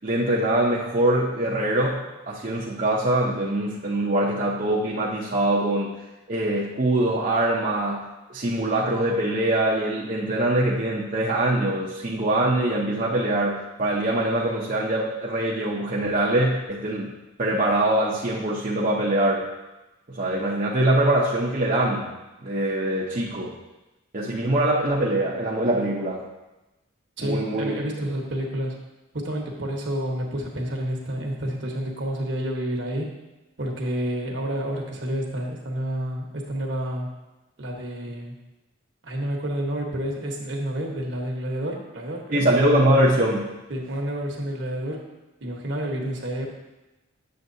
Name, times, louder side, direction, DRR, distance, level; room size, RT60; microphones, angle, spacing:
voice 1, 0.0-5.9 6.3-8.0 8.3-17.1 17.4-19.5 20.1-22.1 22.4-23.5 24.1-26.2 27.2-28.0 42.3-43.5, right 1 dB, 40° right, -6 dB, 0.7 m, -23 dB
voice 2, 27.2-28.8 29.1-33.1 33.6-37.1 37.6-38.3 39.0-42.5 43.7-45.1 45.4-46.5, right 1 dB, 60° right, 0 dB, 1.3 m, -29 dB
7.9 x 7.8 x 2.7 m, 1.0 s
head